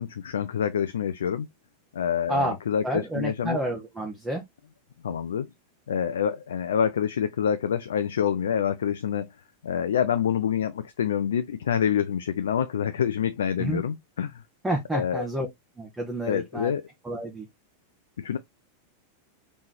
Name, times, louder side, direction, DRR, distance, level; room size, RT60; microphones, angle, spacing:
voice 1, 0.0-1.5 1.9-3.6 5.0-5.5 5.9-9.3 9.6-14.4 14.9-15.2 16.3-16.8 18.2-18.4, left 8 dB, 65° left, 0.4 m, -27 dB
voice 2, 2.8-4.4 13.6-13.8 14.6-15.5 15.8-16.7 17.0-17.5, right 1 dB, 10° right, 1.1 m, -29 dB
4.0 x 3.6 x 2.8 m
figure-of-eight pair, 90°, 0 cm